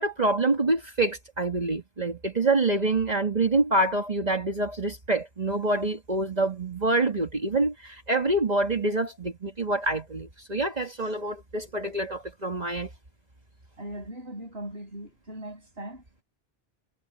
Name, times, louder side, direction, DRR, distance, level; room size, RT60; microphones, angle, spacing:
voice 1, 0.0-12.9, right 2 dB, 40° right, 2.0 m, -26 dB
voice 2, 13.8-16.2, right 1 dB, 80° right, 7.4 m, -39 dB
omnidirectional pair, 1.0 m